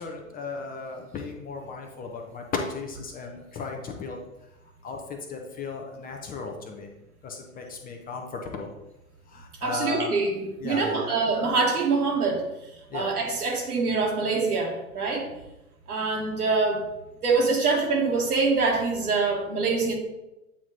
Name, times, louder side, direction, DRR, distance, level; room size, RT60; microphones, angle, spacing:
voice 1, 0.0-4.2 4.8-6.9 7.2-8.7 9.3-10.2 10.6-11.1 12.9-13.1, left 4 dB, 20° left, 2 dB, 0.7 m, -35 dB
voice 2, 9.6-12.5 12.9-15.3 15.9-16.9 17.2-20.0, right 4 dB, 75° right, 0 dB, 1.8 m, -25 dB
8.5 x 3.0 x 3.8 m, 0.96 s
figure-of-eight pair, 100°, 45 cm